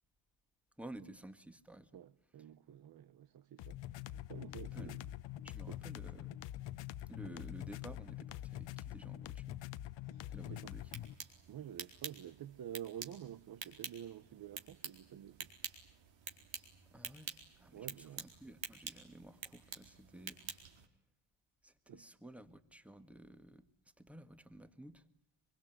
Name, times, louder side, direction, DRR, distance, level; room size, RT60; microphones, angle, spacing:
voice 1, 0.8-1.9 4.7-5.0 5.4-6.4 7.1-9.6 10.3-10.9 16.9-20.4 21.6-23.7 24.0-25.0, right 1 dB, 5° right, 1.7 m, -53 dB
voice 2, 1.9-5.0 5.5-5.8 7.1-7.4 10.0-10.7 11.5-15.5 17.7-18.3 21.9-22.1, right 10 dB, 50° right, 1.0 m, -50 dB
sound 1, 3.6-11.1, left 13 dB, 65° left, 1.0 m, -45 dB
sound 2, 10.7-20.9, right 8 dB, 70° right, 4.4 m, -49 dB
25.5 x 23.5 x 9.1 m
cardioid pair, 145°, 47 cm